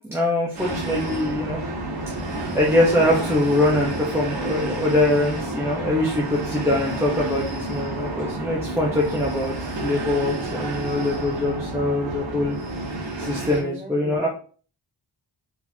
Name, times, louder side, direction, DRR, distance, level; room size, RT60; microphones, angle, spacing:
voice 1, 0.1-1.6 2.1-2.2 2.5-9.5 9.8-12.6 13.2-14.3, left 1 dB, 5° right, -4 dB, 1.0 m, -23 dB
sound 1, 0.5-13.6, right 2 dB, 80° right, 1.7 m, -30 dB
voice 2, 13.3-14.3, right 1 dB, 20° right, -3 dB, 2.1 m, -39 dB
4.5 x 3.8 x 2.8 m, 0.41 s
cardioid pair, 85°, 44 cm